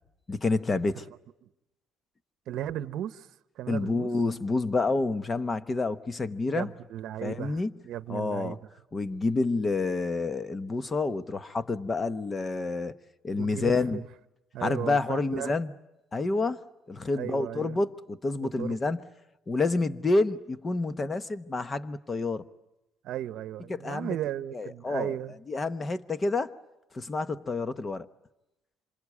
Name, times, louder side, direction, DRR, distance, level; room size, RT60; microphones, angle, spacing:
voice 1, 0.3-1.0 3.7-6.7 7.2-7.7 8.1-8.6 8.9-12.9 13.2-14.0 14.6-15.7 16.1-19.0 19.5-22.4 23.7-24.2 24.5-25.1 25.5-26.5 26.9-28.1, left 3 dB, 20° left, 0.9 m, -28 dB
voice 2, 2.5-3.3 3.6-4.1 6.5-8.6 13.3-14.1 14.5-15.6 17.2-17.8 18.4-19.0 23.0-25.4, right 12 dB, 65° right, 0.9 m, -36 dB
27.0 x 25.5 x 8.5 m
cardioid pair, 140°, 0 cm